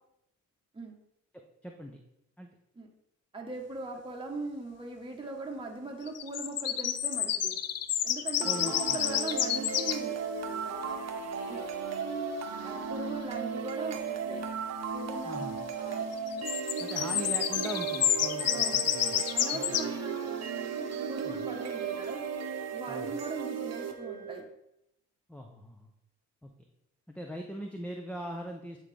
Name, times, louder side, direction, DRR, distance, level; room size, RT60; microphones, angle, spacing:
voice 1, 1.6-2.0 2.4-2.5 8.4-9.0 15.2-15.6 16.8-19.2 19.5-19.8 21.2-21.4 22.9-23.1 25.3-25.9 26.4-26.5 27.1-28.8, equal, 5° left, 2 dB, 0.6 m, -41 dB
voice 2, 3.3-7.6 8.0-10.2 10.6-11.1 11.5-11.6 12.6-14.4 14.9-16.1 18.5-18.9 19.3-20.5 21.1-22.3 22.7-24.5, right 2 dB, 15° right, 1 dB, 1.0 m, -40 dB
sound 1, 6.1-10.0 16.1-19.9, left 10 dB, 55° left, 0.5 m, -29 dB
sound 2, 8.4-24.4, right 6 dB, 60° right, 0.9 m, -36 dB
8.9 x 3.7 x 3.3 m, 0.81 s
cardioid pair, 90°, 30 cm